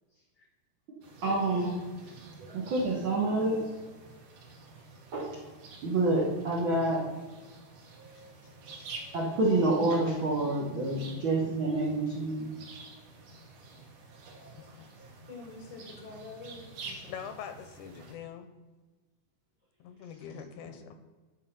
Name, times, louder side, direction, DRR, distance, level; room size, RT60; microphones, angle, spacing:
sound 1, 1.0-18.1, right 3 dB, 75° right, 2.8 m, -49 dB
voice 1, 1.2-1.9 2.4-3.6 5.1-5.4 5.8-7.1 9.1-12.5, right 2 dB, 55° right, -4 dB, 1.5 m, -28 dB
voice 2, 2.0-2.6 4.7-4.8 8.1-9.0 12.1-12.2 14.7-14.8 15.3-17.3 20.2-20.8, left 3 dB, 30° left, 1 dB, 0.7 m, -49 dB
voice 3, 14.5-14.9 17.1-18.5 19.8-20.9, left 8 dB, 80° left, 8 dB, 2.1 m, -43 dB
10.5 x 4.5 x 5.6 m, 1.3 s
omnidirectional pair, 3.8 m